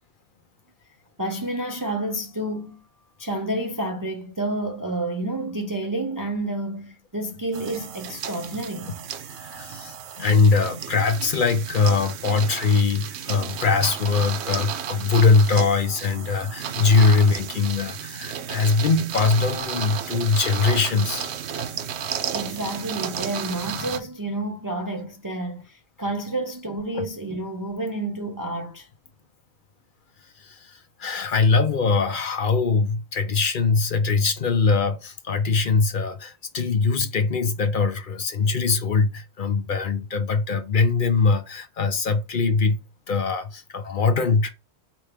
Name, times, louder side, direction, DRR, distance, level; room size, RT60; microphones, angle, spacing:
voice 1, 1.2-2.8 3.2-8.9 22.3-28.9, right 1 dB, 25° right, 0.4 m, -29 dB
sound 1, 7.5-24.0, right 8 dB, 80° right, 0.9 m, -33 dB
voice 2, 9.3-21.7 26.9-27.0 30.2-42.8 43.1-44.5, left 4 dB, 55° left, 0.8 m, -22 dB
4.6 x 3.0 x 3.4 m
omnidirectional pair, 1.1 m